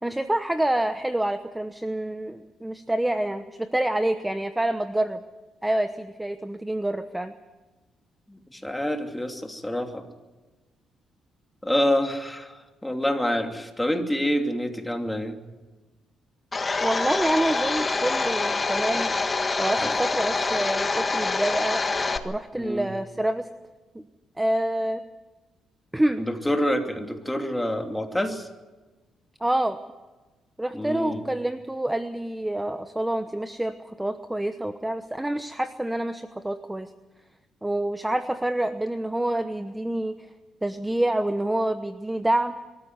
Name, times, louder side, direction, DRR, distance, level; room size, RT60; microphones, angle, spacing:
voice 1, 0.0-5.2 5.6-7.3 16.8-19.1 19.6-21.8 22.2-23.5 23.9-24.0 24.4-25.0 25.9-26.2 29.4-29.8 30.6-36.9 37.6-40.2 40.6-42.6, right 1 dB, 10° right, 10 dB, 1.0 m, -27 dB
voice 2, 8.3-10.1 11.6-12.5 12.8-15.4 19.8-19.9 22.5-22.9 26.2-28.5 30.7-31.3, left 1 dB, 5° left, 4 dB, 2.8 m, -27 dB
Domestic sounds home sounds, 16.5-22.2, left 3 dB, 30° left, 1.6 m, -26 dB
23.5 x 14.0 x 9.6 m, 1.2 s
cardioid pair, 90°, 0 cm